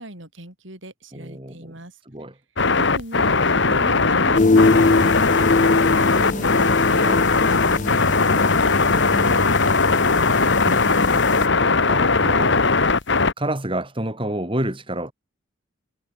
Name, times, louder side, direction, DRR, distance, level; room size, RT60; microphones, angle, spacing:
voice 1, 0.0-2.0 2.7-11.1, right 1 dB, 65° right, 7.1 m, -39 dB
voice 2, 1.1-1.7 2.0-2.3 6.9-7.2 10.4-12.9 13.4-15.1, right 1 dB, 25° right, 5.1 m, -31 dB
sound 1, 2.6-13.3, left 4 dB, 60° left, 2.0 m, -19 dB
sound 2, 4.3-11.5, left 3 dB, 40° left, 0.5 m, -22 dB
head